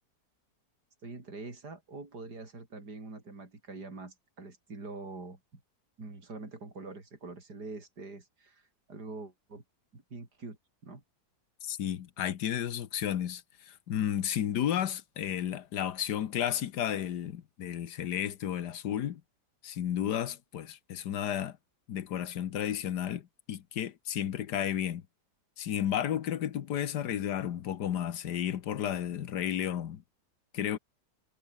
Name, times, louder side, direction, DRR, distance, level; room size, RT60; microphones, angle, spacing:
voice 1, 1.0-5.4 6.0-9.6 9.9-10.6 10.8-11.0, right 3 dB, 65° right, 5.3 m, -44 dB
voice 2, 11.6-13.4 13.7-19.2 19.6-21.6 21.9-25.0 25.6-30.0 30.5-30.8, left 10 dB, 70° left, 1.6 m, -32 dB
omnidirectional pair, 1.9 m